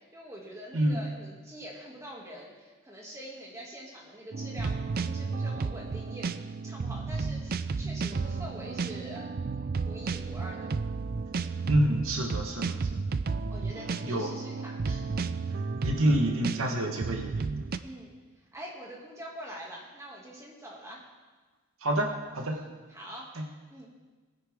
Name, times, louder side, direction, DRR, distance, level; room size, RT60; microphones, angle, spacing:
voice 1, 0.1-6.3 6.6-9.3 9.8-10.7 13.5-15.2 17.8-18.1 18.5-21.0 22.5-23.3 23.7-24.0, equal, 15° right, -3 dB, 2.2 m, -44 dB
sound 1, 4.3-17.8, right 4 dB, 40° right, 0.4 m, -33 dB
voice 2, 11.7-13.0 14.0-14.3 15.8-17.4 21.8-22.6 23.4-23.5, right 1 dB, 70° right, 3 dB, 1.2 m, -27 dB
19.0 x 9.7 x 3.6 m, 1.3 s
head